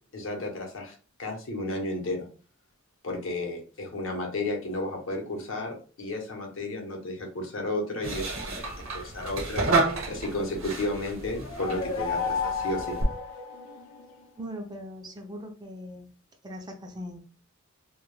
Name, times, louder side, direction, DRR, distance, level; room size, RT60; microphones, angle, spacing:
voice 1, 0.1-2.3 3.0-9.6 10.1-13.0, left 1 dB, 70° left, 2 dB, 0.8 m, -33 dB
sound 1, 8.0-13.0, right 3 dB, 75° right, 0.7 m, -31 dB
sound 2, 11.2-14.1, left 5 dB, 85° left, 0.3 m, -32 dB
voice 2, 14.4-16.1 16.4-17.3, equal, 20° right, 3 dB, 0.3 m, -40 dB
2.2 x 2.1 x 3.0 m, 0.38 s
head